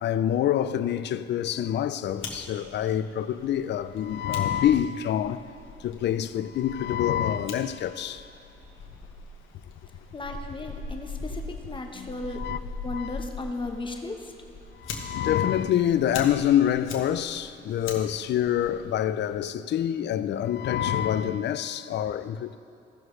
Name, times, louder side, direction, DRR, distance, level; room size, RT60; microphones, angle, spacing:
voice 1, 0.0-5.4 5.8-8.2 11.9-12.1 12.3-12.6 12.9-13.2 14.8-22.6, left 10 dB, 60° left, 0.4 m, -26 dB
Fire, 2.0-19.4, left 3 dB, 85° left, 1.2 m, -42 dB
voice 2, 10.1-12.4 12.8-14.3, left 2 dB, 25° left, 1.0 m, -35 dB
16.5 x 6.3 x 3.2 m
cardioid pair, 90°, 20 cm